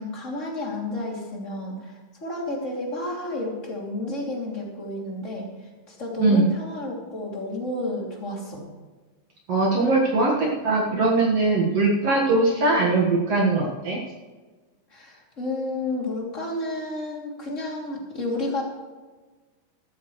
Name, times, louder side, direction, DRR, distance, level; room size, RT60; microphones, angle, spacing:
voice 1, 0.0-8.6 14.9-18.6, left 2 dB, 25° left, -2 dB, 2.8 m, -31 dB
voice 2, 9.5-14.0, right 3 dB, 55° right, -2 dB, 2.4 m, -21 dB
15.0 x 13.5 x 3.2 m, 1.3 s
omnidirectional pair, 3.8 m